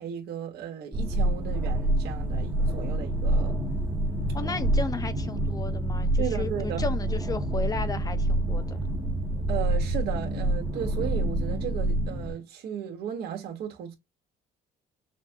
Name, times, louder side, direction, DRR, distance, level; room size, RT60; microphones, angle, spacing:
voice 1, 0.0-3.6 6.2-6.8 9.5-13.9, right 9 dB, 70° right, 1.6 m, -35 dB
sound 1, 0.9-12.3, right 1 dB, 10° right, 1.0 m, -27 dB
voice 2, 4.3-8.8, left 3 dB, 20° left, 0.9 m, -34 dB
6.0 x 2.3 x 2.9 m
cardioid pair, 110°, 17 cm